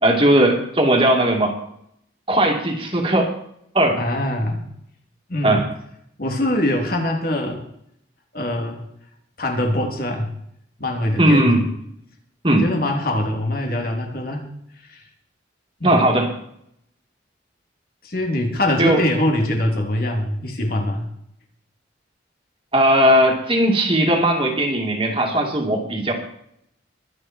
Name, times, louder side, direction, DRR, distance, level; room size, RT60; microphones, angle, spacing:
voice 1, 0.0-1.6 2.3-3.3 3.7-4.0 5.4-5.6 11.2-11.6 12.4-12.7 15.8-16.3 18.8-19.0 22.7-26.1, right 1 dB, 30° right, 2 dB, 2.7 m, -17 dB
voice 2, 4.0-4.6 5.3-5.6 6.2-7.6 8.3-8.8 9.4-10.3 10.8-11.6 12.5-14.4 14.9-15.0 15.8-15.9 18.0-21.1, left 1 dB, 50° left, 1 dB, 3.2 m, -23 dB
23.0 x 9.3 x 4.6 m, 0.73 s
head